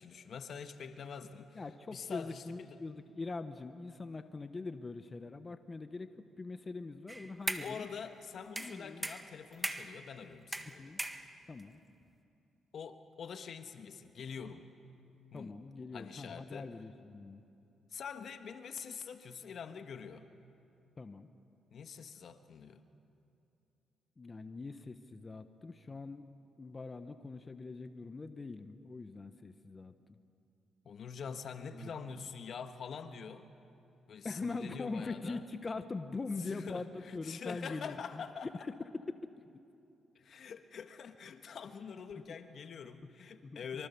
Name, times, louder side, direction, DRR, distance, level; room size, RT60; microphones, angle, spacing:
voice 1, 0.0-1.6 1.9-2.8 7.6-10.9 12.7-14.7 15.3-15.6 15.9-16.7 17.9-20.3 21.7-22.8 30.8-33.5 34.1-35.4 36.5-38.6 40.1-43.9, left 6 dB, 60° left, 8 dB, 1.4 m, -45 dB
voice 2, 1.5-7.9 8.6-9.1 10.8-11.0 11.5-11.8 15.3-17.4 21.0-21.3 24.2-26.3 26.6-29.9 31.7-31.9 34.2-39.6 43.4-43.6, left 3 dB, 30° left, 9 dB, 1.1 m, -42 dB
sound 1, 7.1-7.8 8.6-10.0 10.5-11.6, right 1 dB, 15° right, 1.5 m, -39 dB
25.5 x 24.5 x 7.0 m, 2.7 s
cardioid pair, 70°, 0 cm